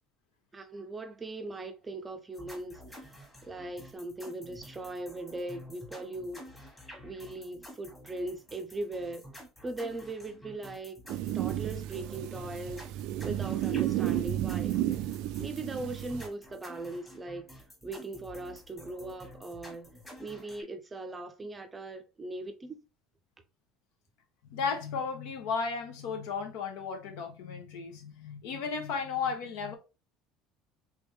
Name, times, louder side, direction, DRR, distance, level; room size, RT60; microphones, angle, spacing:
voice 1, 0.5-3.2 3.5-6.5 7.0-9.3 9.6-12.9 13.2-14.8 15.4-17.5 17.8-19.9 20.2-22.8, right 2 dB, 15° right, 0.5 m, -39 dB
sound 1, 2.3-20.6, left 1 dB, 10° left, 1.3 m, -50 dB
sound 2, 11.1-16.3, right 13 dB, 65° right, 0.3 m, -32 dB
voice 2, 24.5-29.7, left 5 dB, 80° left, 1.2 m, -34 dB
3.4 x 3.4 x 3.4 m
cardioid pair, 160°, 0 cm